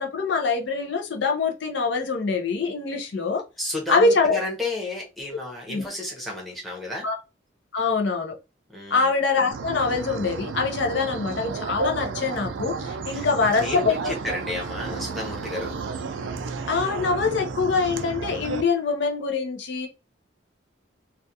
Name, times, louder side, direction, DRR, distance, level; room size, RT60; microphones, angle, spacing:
voice 1, 0.0-3.4 3.9-4.4 5.7-5.9 7.0-7.2 7.7-8.4 8.9-14.1 16.7-19.9, left 4 dB, 65° left, 0.5 m, -24 dB
voice 2, 3.6-7.1 8.7-9.1 13.1-15.8, left 2 dB, ahead, 0.7 m, -32 dB
sound 1, 9.5-18.6, right 5 dB, 75° right, 0.4 m, -32 dB
2.3 x 2.2 x 2.7 m
head